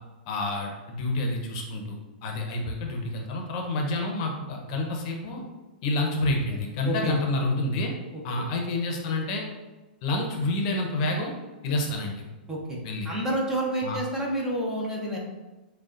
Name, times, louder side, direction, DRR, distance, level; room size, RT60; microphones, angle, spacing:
voice 1, 0.3-5.4 5.8-7.9 8.2-9.4 10.0-11.4 11.6-12.2 12.8-13.1 13.8-14.0, left 2 dB, 45° left, 2 dB, 0.8 m, -28 dB
voice 2, 6.8-7.2 8.1-8.4 12.5-12.8 13.0-15.2, right 1 dB, 10° right, -3 dB, 0.8 m, -29 dB
6.4 x 2.3 x 2.5 m, 1.1 s
hypercardioid pair, 140°, 5 cm